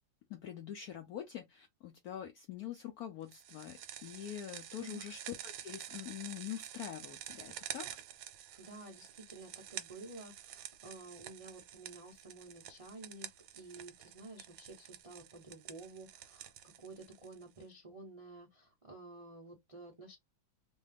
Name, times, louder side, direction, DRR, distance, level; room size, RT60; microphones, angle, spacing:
voice 1, 0.3-7.9, left 11 dB, 75° left, 0.8 m, -45 dB
sound 1, 3.3-17.6, right 11 dB, 85° right, 1.4 m, -49 dB
voice 2, 8.6-13.3 13.5-16.5 16.8-20.2, right 2 dB, 60° right, 0.3 m, -51 dB
3.1 x 2.3 x 3.3 m
omnidirectional pair, 2.1 m